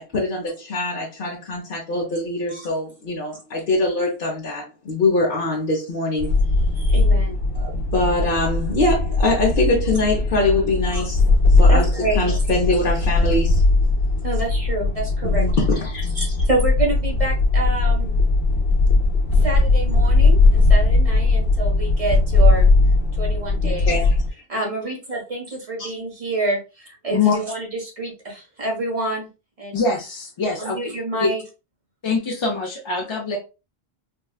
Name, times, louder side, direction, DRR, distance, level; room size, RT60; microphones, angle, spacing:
voice 1, 0.0-6.3 7.5-11.2 11.6-11.9 12.2-13.6 15.2-16.3 23.6-24.1 25.8-25.9, left 2 dB, 60° left, 1.0 m, -23 dB
sound 1, 6.2-24.3, left 3 dB, 85° left, 1.1 m, -18 dB
voice 2, 6.8-7.4 10.9-11.1 11.7-12.2 14.2-15.6 16.1-18.2 19.4-22.7 23.2-23.9 24.5-29.3 29.6-29.8 30.6-31.4, right 2 dB, 35° right, 1.2 m, -27 dB
voice 3, 29.7-30.8 31.2-31.3 32.0-33.4, left 4 dB, 40° left, 0.4 m, -23 dB
3.7 x 2.2 x 2.3 m
omnidirectional pair, 1.0 m